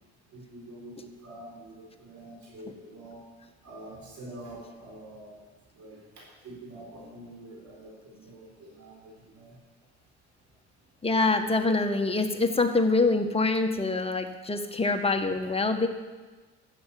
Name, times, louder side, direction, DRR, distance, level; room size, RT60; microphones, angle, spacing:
voice 1, 0.3-3.2 3.6-5.4 5.7-9.6, right 1 dB, 70° right, -3 dB, 4.2 m, -46 dB
voice 2, 11.0-15.9, left 3 dB, 20° left, 5 dB, 1.4 m, -25 dB
12.5 x 8.1 x 8.5 m, 1.3 s
cardioid pair, 90°, 30 cm